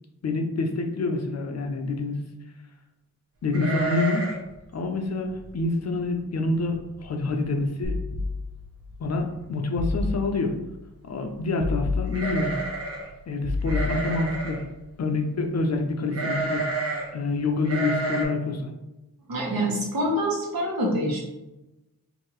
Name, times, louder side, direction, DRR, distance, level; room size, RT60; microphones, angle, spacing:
voice 1, 0.2-2.2 3.4-4.3 4.7-8.0 9.0-10.6 11.0-12.5 13.3-14.6 15.0-18.7, left 3 dB, 45° left, 4 dB, 0.5 m, -27 dB
sound 1, 3.5-4.5 4.7-4.8 5.3-5.6 6.1-6.2 6.5-7.0 7.4-7.5 8.6-8.7 9.0-9.4 12.1-13.1 13.7-14.6 16.1-17.1 17.6-18.2, right 3 dB, 40° right, 0.8 m, -30 dB
sound 2, 7.8-8.9 9.8-10.7 11.6-12.7 13.4-14.5, left 3 dB, 5° right, 0.5 m, -30 dB
voice 2, 19.3-21.2, equal, 75° right, -3 dB, 1.2 m, -26 dB
4.6 x 2.6 x 3.0 m, 0.98 s
wide cardioid pair, 170°, 36 cm